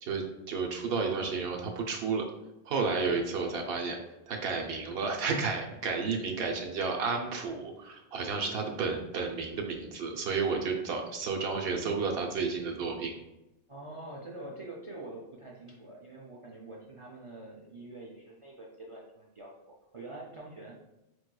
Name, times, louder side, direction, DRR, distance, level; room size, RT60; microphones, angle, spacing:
voice 1, 0.0-2.2 2.7-4.0 4.3-13.1, right 4 dB, 65° right, 1 dB, 0.8 m, -32 dB
voice 2, 13.7-20.8, right 2 dB, 45° right, -3 dB, 0.4 m, -45 dB
5.0 x 3.0 x 2.2 m, 0.94 s
omnidirectional pair, 1.2 m